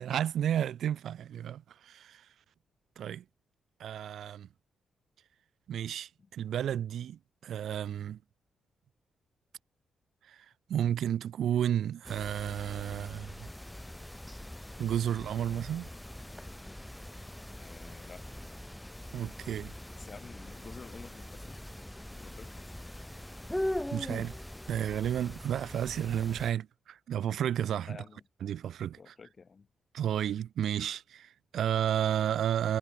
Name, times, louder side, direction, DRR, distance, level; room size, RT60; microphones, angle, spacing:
voice 1, 0.0-2.3 3.0-3.2 3.8-4.5 5.7-8.2 10.3-13.5 14.8-15.9 19.1-19.7 23.9-24.3 24.7-28.0 28.4-29.0 29.9-32.8, right 10 dB, 75° right, 0.7 m, -32 dB
sound 1, 12.0-26.5, left 1 dB, 10° left, 1.4 m, -42 dB
voice 2, 17.3-18.3 20.0-21.6 22.1-22.8 27.9-28.2 29.0-29.7, left 5 dB, 45° left, 2.1 m, -51 dB
supercardioid pair, 55°, 0 cm